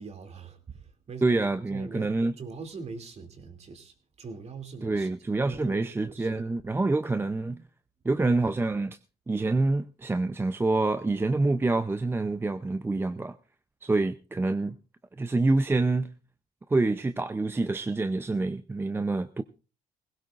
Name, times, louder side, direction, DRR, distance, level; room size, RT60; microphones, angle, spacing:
voice 1, 0.0-5.1 5.5-6.5, right 4 dB, 40° right, 2.7 m, -43 dB
voice 2, 1.2-2.3 4.8-7.6 8.0-9.0 9.3-13.4 13.8-14.8 15.2-16.1 16.7-19.4, right 3 dB, 15° right, 0.6 m, -26 dB
20.0 x 17.0 x 2.5 m
cardioid pair, 110°, 17 cm